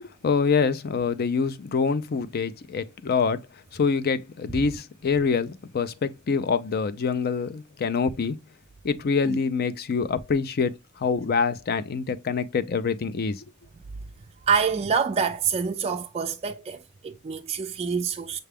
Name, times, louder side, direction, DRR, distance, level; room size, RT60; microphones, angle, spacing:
voice 1, 0.0-3.4 3.7-8.4 8.8-13.4, left 5 dB, 50° left, 0.4 m, -25 dB
voice 2, 14.5-18.4, right 6 dB, 30° right, 0.3 m, -26 dB
6.5 x 2.3 x 3.4 m
head